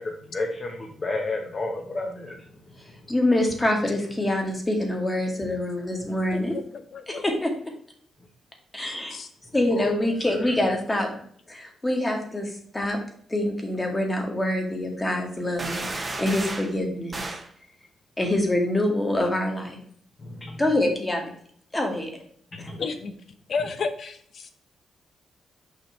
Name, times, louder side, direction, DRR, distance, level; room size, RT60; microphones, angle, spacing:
voice 1, 0.0-2.4 9.7-9.9 10.2-10.3 20.2-20.6 22.5-22.8, left 2 dB, 35° left, 0 dB, 1.2 m, -31 dB
voice 2, 3.1-6.6 7.1-7.5 8.7-9.2 9.5-11.1 11.5-13.0 13.3-17.2 18.2-19.8 20.6-21.3 21.7-22.1 22.6-22.7, left 1 dB, 15° left, 2 dB, 1.7 m, -25 dB
voice 3, 6.3-7.2 9.1-9.3 22.7-23.1 23.5-24.5, left 4 dB, 55° left, 9 dB, 0.9 m, -32 dB
sound 1, 15.6-16.7 17.1-17.5, right 2 dB, 25° right, 1.0 m, -32 dB
6.5 x 5.2 x 3.2 m, 0.62 s
cardioid pair, 100°, 0 cm